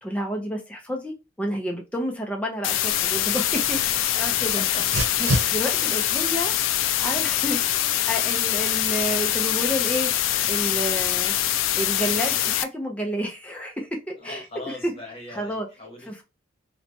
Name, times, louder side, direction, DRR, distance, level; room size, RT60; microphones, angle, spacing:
voice 1, 0.0-4.6 5.2-6.5 7.0-10.1 10.5-11.3 11.8-14.9 15.3-15.7 16.0-16.2, equal, 5° left, 0.5 m, -30 dB
sound 1, 2.6-12.6, left 12 dB, 90° left, 0.3 m, -24 dB
Dog, 2.9-12.0, right 1 dB, 70° right, 0.6 m, -35 dB
voice 2, 4.4-5.0 14.2-16.2, left 2 dB, 30° left, 1.3 m, -39 dB
2.8 x 2.2 x 2.6 m
head